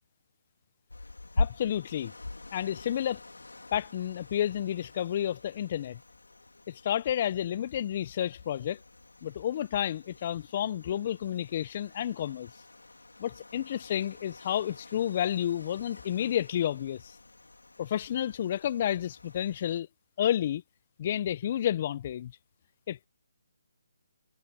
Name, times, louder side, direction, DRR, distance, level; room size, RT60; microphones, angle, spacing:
sound 1, 0.9-19.8, left 2 dB, 85° left, 3.9 m, -43 dB
voice 1, 1.4-2.1 2.5-3.2 3.7-6.0 6.7-8.8 9.2-12.5 13.2-17.1 17.8-19.9 20.2-20.6 21.0-22.3 22.9-23.1, left 10 dB, 40° left, 0.9 m, -30 dB
figure-of-eight pair, 150°, 0 cm